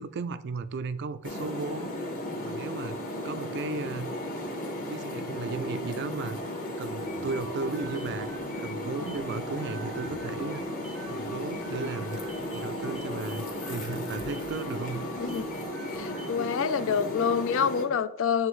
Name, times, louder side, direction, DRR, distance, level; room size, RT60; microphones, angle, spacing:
voice 1, 0.0-2.0 2.4-3.0 3.2-4.1 4.9-6.4 6.8-8.3 8.6-10.6 11.1-12.2 12.5-15.3, right 4 dB, 55° right, 0.4 m, -35 dB
sound 1, 1.2-17.8, left 1 dB, 40° left, 1.1 m, -35 dB
sound 2, 7.0-16.5, right 1 dB, ahead, 0.7 m, -46 dB
voice 2, 15.9-18.5, left 6 dB, 65° left, 0.4 m, -27 dB
8.9 x 3.5 x 3.1 m
head